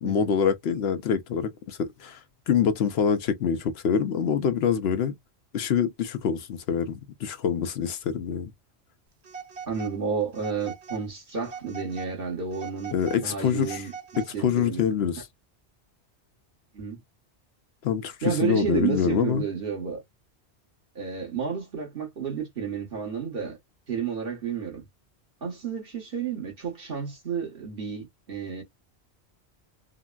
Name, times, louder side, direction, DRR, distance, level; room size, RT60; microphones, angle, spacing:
voice 1, 0.0-2.2 2.5-5.1 5.5-8.5 12.9-13.8 14.2-15.3 17.8-19.4, left 7 dB, 70° left, 0.8 m, -25 dB
Telephone, 9.2-10.0 10.3-11.1 11.4-12.1 12.5-14.5, right 6 dB, 75° right, 1.2 m, -41 dB
voice 2, 9.7-13.9 14.3-14.8 16.7-17.0 18.2-20.0 20.9-23.6 23.9-24.8 25.4-28.6, right 6 dB, 55° right, 1.6 m, -31 dB
3.7 x 2.1 x 2.3 m
omnidirectional pair, 1.1 m